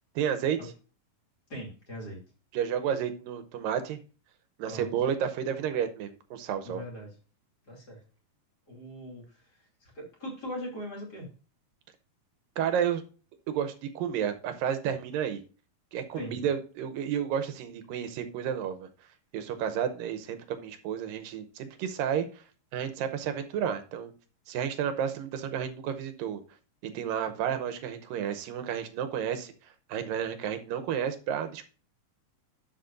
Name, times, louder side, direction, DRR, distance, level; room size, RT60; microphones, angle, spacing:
voice 1, 0.2-0.7 2.5-4.0 4.6-6.8 12.6-13.0 13.5-15.4 15.9-18.9 19.3-22.4 22.7-24.1 24.5-26.4 26.9-29.5 29.9-31.6, right 8 dB, 85° right, 8 dB, 2.5 m, -31 dB
voice 2, 1.5-2.2 4.6-4.9 6.6-7.1 7.6-8.0 8.7-9.5 9.8-11.3 16.1-16.5, equal, 30° left, -2 dB, 3.0 m, -40 dB
11.5 x 6.4 x 2.6 m, 0.36 s
omnidirectional pair, 4.0 m